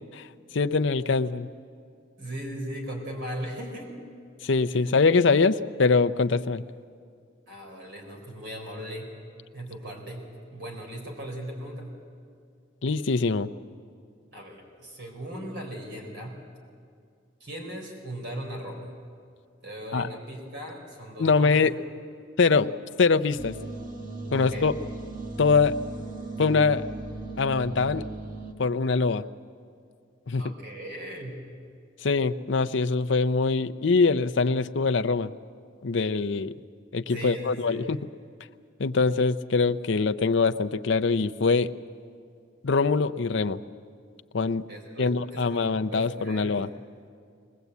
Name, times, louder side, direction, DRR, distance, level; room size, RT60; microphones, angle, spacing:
voice 1, 0.5-1.5 4.4-6.6 12.8-13.5 19.9-20.1 21.2-21.7 22.4-22.7 23.0-23.5 24.3-24.7 25.4-25.7 26.4-26.8 27.4-28.1 28.6-29.2 30.3-30.4 32.0-35.3 35.8-36.5 36.9-38.0 38.8-41.7 42.6-43.6 44.3-44.6 45.0-46.7, left 4 dB, 60° left, 9 dB, 0.6 m, -23 dB
voice 2, 2.2-4.0 4.7-4.9 7.5-9.1 9.5-12.0 14.3-16.4 17.4-18.9 19.6-21.7 24.3-24.7 30.4-31.3 37.1-37.9 44.7-46.6, right 1 dB, 60° right, 1 dB, 4.5 m, -38 dB
sound 1, 23.4-28.5, right 2 dB, 40° right, 1.6 m, -37 dB
21.0 x 20.5 x 8.2 m, 2.3 s
head